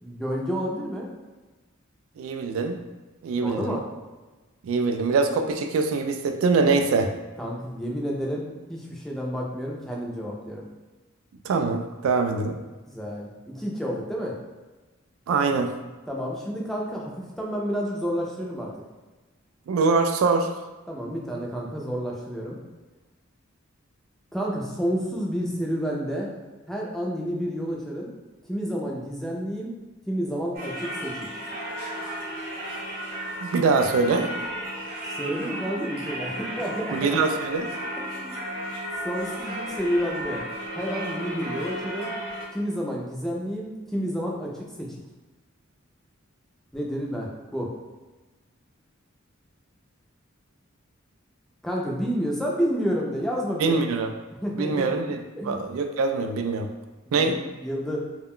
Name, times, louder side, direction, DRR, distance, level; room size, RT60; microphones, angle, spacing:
voice 1, 0.0-1.1 3.4-3.8 7.4-10.6 12.9-14.3 16.1-18.7 20.9-22.6 24.3-26.3 26.7-28.1 28.5-29.8 30.1-31.3 35.0-37.2 38.2-38.4 39.0-40.4 40.8-42.1 42.5-45.0 46.7-47.7 51.6-53.8 54.4-54.9 55.4-55.7 57.1-58.0, equal, ahead, -3 dB, 0.4 m, -30 dB
voice 2, 2.2-2.8 3.2-3.8 4.6-7.1 11.4-12.6 15.3-15.7 19.7-20.5 33.4-34.3 36.9-37.7 53.6-54.1 54.6-55.2 55.4-56.7 57.1-57.4, right 4 dB, 90° right, 6 dB, 0.3 m, -23 dB
Singing / Church bell, 30.5-42.5, right 1 dB, 45° right, 0.8 m, -34 dB
2.3 x 2.2 x 3.5 m, 1.2 s
head